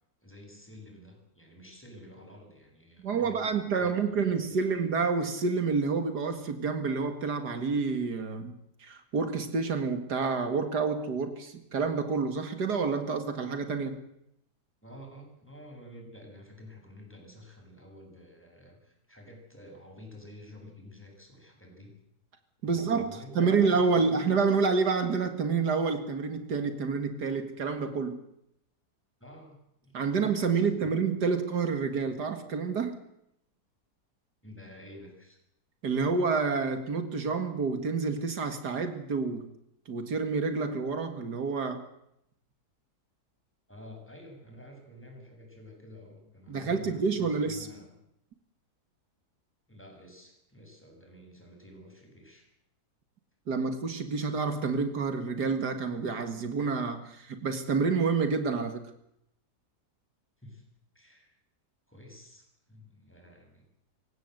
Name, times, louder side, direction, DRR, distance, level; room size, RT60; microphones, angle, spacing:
voice 1, 0.2-4.8 14.8-21.9 22.6-24.2 29.2-29.6 29.8-30.2 30.5-30.9 34.4-35.4 43.7-48.0 49.7-52.5 60.4-60.6 60.9-61.3 61.9-63.6, left 1 dB, 5° left, 1 dB, 7.5 m, -50 dB
voice 2, 3.0-14.0 22.6-28.2 29.9-33.0 35.8-39.5 39.9-41.8 46.5-47.7 53.5-58.8, right 5 dB, 80° right, 8 dB, 2.5 m, -28 dB
26.5 x 16.5 x 8.0 m, 0.78 s
omnidirectional pair, 1.7 m